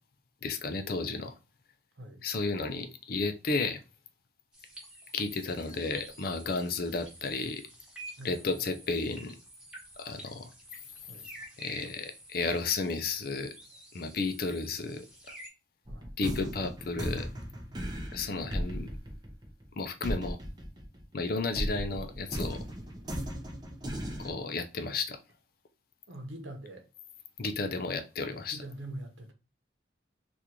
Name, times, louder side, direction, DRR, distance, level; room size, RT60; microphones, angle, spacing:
voice 1, 0.4-1.4 2.2-3.8 5.1-7.7 8.2-9.3 10.0-10.5 11.6-13.5 13.9-15.3 16.2-17.3 18.1-18.9 19.8-20.4 21.1-22.6 24.2-25.2 27.4-28.6, left 3 dB, 50° left, 0.5 m, -33 dB
sound 1, 4.5-15.5, right 1 dB, 5° right, 1.0 m, -50 dB
sound 2, 15.9-21.2 21.6-24.3, equal, 20° right, 0.6 m, -36 dB
voice 2, 26.1-26.9 28.5-29.3, right 1 dB, 75° right, 0.9 m, -43 dB
3.6 x 2.5 x 2.9 m
head